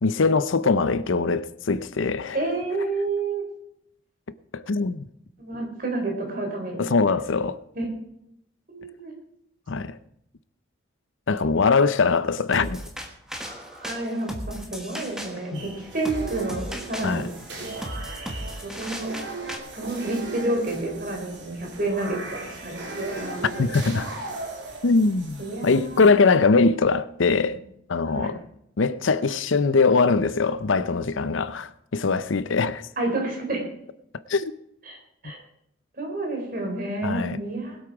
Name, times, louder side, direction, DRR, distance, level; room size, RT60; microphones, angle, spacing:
voice 1, 0.0-2.4 4.5-5.1 6.8-7.6 9.7-10.0 11.3-12.8 15.5-15.6 17.0-17.3 23.6-24.1 24.8-27.6 27.9-28.4 28.8-32.8 34.3-34.5 37.0-37.4, left 4 dB, 75° left, 0.6 m, -22 dB
voice 2, 2.3-3.5 5.4-6.9 7.7-7.8 8.7-9.1 13.3-17.3 18.6-19.1 19.7-23.9 25.4-26.0 28.0-28.3 33.0-33.6 34.8-35.0 35.2-35.4 35.9-37.8, right 2 dB, 45° right, 4.0 m, -30 dB
sound 1, 12.5-19.6, equal, 5° right, 1.4 m, -36 dB
sound 2, 15.5-26.1, right 3 dB, 60° right, 3.1 m, -38 dB
20.5 x 8.2 x 4.8 m
head